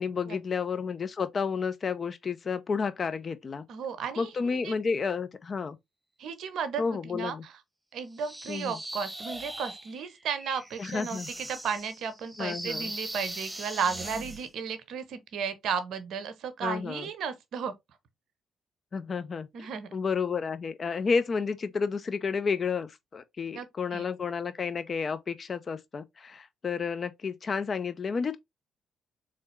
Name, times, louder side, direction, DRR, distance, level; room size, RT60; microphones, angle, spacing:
voice 1, 0.0-3.7 4.2-5.8 6.8-7.4 8.5-8.8 10.8-11.3 12.4-12.9 16.6-17.1 18.9-28.4, left 5 dB, 45° left, 0.5 m, -31 dB
voice 2, 3.7-4.7 6.2-7.5 7.9-17.7 19.5-19.9 23.5-24.0, right 6 dB, 65° right, 0.7 m, -34 dB
sound 1, 8.2-14.5, right 1 dB, 10° right, 0.9 m, -40 dB
3.8 x 3.2 x 3.1 m
hypercardioid pair, 45°, 0 cm